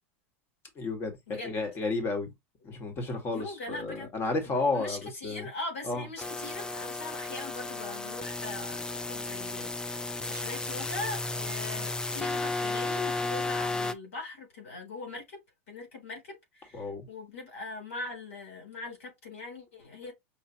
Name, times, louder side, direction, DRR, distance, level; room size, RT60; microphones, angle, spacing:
voice 1, 0.8-2.3 2.6-5.5 5.8-6.0 16.7-17.0, left 3 dB, 30° left, 1.8 m, -32 dB
voice 2, 3.3-4.1 4.5-15.4 15.7-20.1, left 2 dB, 85° left, 3.5 m, -41 dB
sound 1, 6.2-13.9, left 3 dB, 10° left, 0.5 m, -33 dB
5.8 x 2.7 x 2.8 m
supercardioid pair, 115°, 7 cm